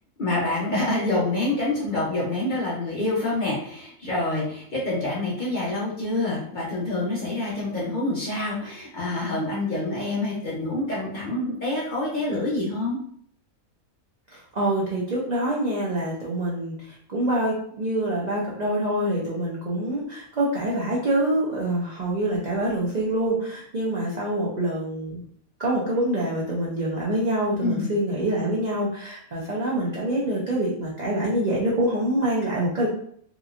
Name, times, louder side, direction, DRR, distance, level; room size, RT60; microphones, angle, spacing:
voice 1, 0.2-13.0 27.6-27.9, left 2 dB, 45° left, -6 dB, 0.7 m, -27 dB
voice 2, 14.3-25.2 25.6-32.9, right 1 dB, 55° right, -6 dB, 0.4 m, -25 dB
2.9 x 2.9 x 2.4 m, 0.63 s
omnidirectional pair, 1.5 m